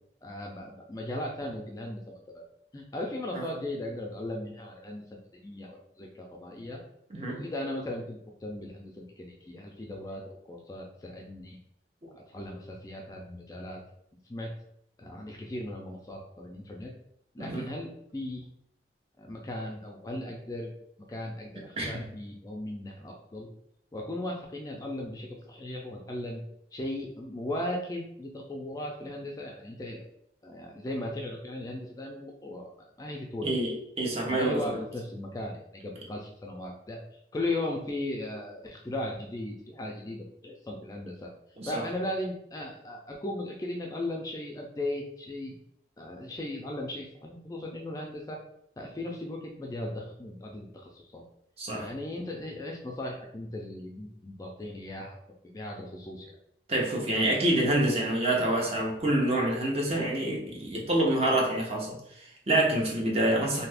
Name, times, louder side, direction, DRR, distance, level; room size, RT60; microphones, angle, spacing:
voice 1, 0.2-2.4 2.7-6.8 7.3-11.6 12.1-13.8 14.3-14.5 15.0-16.9 17.3-18.5 19.2-20.7 21.1-23.5 23.9-26.4 26.7-30.0 30.4-32.7 33.0-33.5 34.2-37.0 37.3-41.3 41.7-45.5 46.0-48.4 48.8-51.2 51.7-55.2 55.5-56.3, left 1 dB, 20° left, 0 dB, 0.3 m, -37 dB
voice 2, 33.4-34.6 41.6-41.8 51.6-51.9 56.7-63.7, right 1 dB, 35° right, -1 dB, 0.7 m, -27 dB
2.7 x 2.4 x 3.3 m, 0.73 s
head